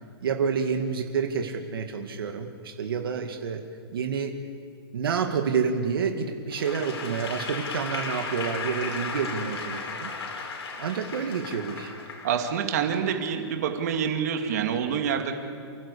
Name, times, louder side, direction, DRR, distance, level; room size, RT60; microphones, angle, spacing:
voice 1, 0.2-3.6 3.9-4.4 4.9-10.1 10.8-11.9, right 6 dB, 60° right, 4 dB, 2.0 m, -28 dB
Applause / Crowd, 6.5-12.8, left 4 dB, 80° left, 5.2 m, -35 dB
voice 2, 12.2-15.4, right 7 dB, 40° right, 4 dB, 2.4 m, -27 dB
29.5 x 15.5 x 8.5 m, 2.3 s
hypercardioid pair, 180°, 14 cm